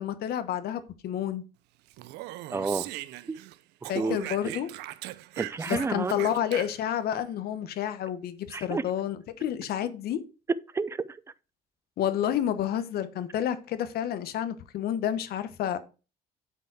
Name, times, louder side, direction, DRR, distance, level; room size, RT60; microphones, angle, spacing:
voice 1, 0.0-1.4 3.9-4.7 5.7-10.2 12.0-15.8, left 10 dB, 65° left, 0.9 m, -30 dB
Speech, 1.9-3.5 3.8-7.0, right 16 dB, 90° right, 0.5 m, -39 dB
voice 2, 2.5-2.9 3.3-3.4 4.0-4.2 4.4-4.5 5.4-6.2 8.5-8.8 10.7-11.2, right 4 dB, 15° right, 0.4 m, -30 dB
8.1 x 4.7 x 4.7 m
cardioid pair, 110°, 17 cm